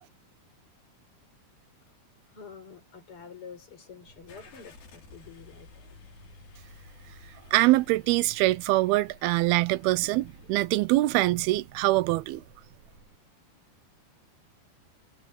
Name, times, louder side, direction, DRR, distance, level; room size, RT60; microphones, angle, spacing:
voice 1, 2.3-6.0, left 6 dB, 35° left, 6.2 m, -48 dB
sound 1, 4.0-13.2, right 3 dB, 50° right, 4.7 m, -57 dB
Car / Engine starting, 4.3-10.7, left 5 dB, 70° left, 5.4 m, -54 dB
voice 2, 7.5-12.4, right 18 dB, 80° right, 2.6 m, -24 dB
omnidirectional pair, 4.5 m